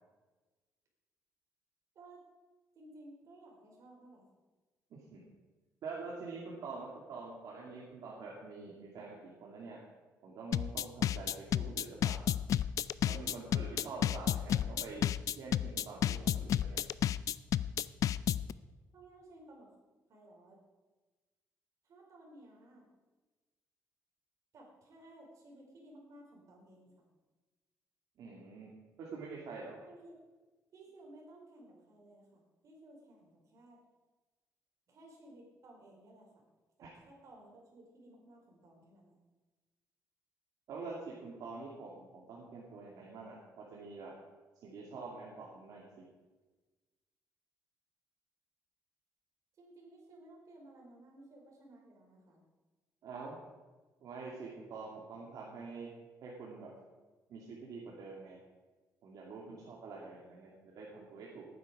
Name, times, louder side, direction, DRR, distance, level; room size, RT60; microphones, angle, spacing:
voice 1, 2.7-4.3 18.9-19.7 20.1-20.6 21.8-22.8 24.5-27.0 29.8-30.1 30.7-33.8 34.9-36.3 36.8-39.2 49.6-52.4, right 1 dB, 55° right, -1 dB, 4.7 m, -57 dB
voice 2, 4.9-5.2 5.8-9.8 10.2-12.2 13.0-15.1 15.4-16.8 28.2-29.8 36.8-36.9 40.7-44.1 44.6-46.1 53.0-53.4 54.0-55.9 56.2-56.7 57.3-58.4 59.0-61.5, right 4 dB, 70° right, -3 dB, 2.5 m, -46 dB
sound 1, 10.5-18.5, left 10 dB, 60° left, 0.4 m, -31 dB
18.0 x 9.7 x 5.0 m, 1.3 s
cardioid pair, 145°, 6 cm